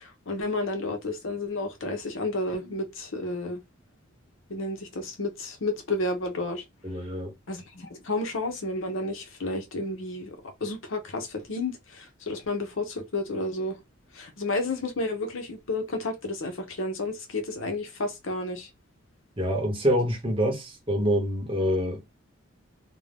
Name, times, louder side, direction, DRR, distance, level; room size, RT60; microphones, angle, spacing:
voice 1, 0.0-3.6 4.5-6.6 7.5-13.8 14.1-18.7, left 2 dB, 75° left, 0.7 m, -31 dB
voice 2, 6.8-7.3 19.4-22.0, equal, 25° right, 0.9 m, -26 dB
2.6 x 2.1 x 3.3 m
head